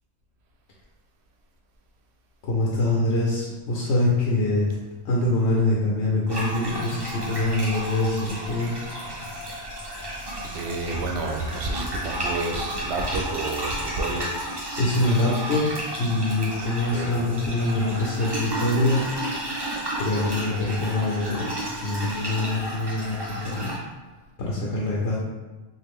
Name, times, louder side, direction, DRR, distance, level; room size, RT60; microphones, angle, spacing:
voice 1, 2.4-4.7 5.0-8.7 9.1-9.4 14.8-19.1 20.0-21.5 21.8-23.8 24.4-25.2, left 2 dB, 90° left, -4 dB, 0.9 m, -24 dB
sound 1, 6.3-23.8, right 1 dB, 30° right, 0.5 m, -32 dB
voice 2, 10.5-14.3 16.9-17.1, right 2 dB, 75° right, 3 dB, 0.8 m, -30 dB
3.2 x 2.4 x 3.5 m, 1.2 s
omnidirectional pair, 1.1 m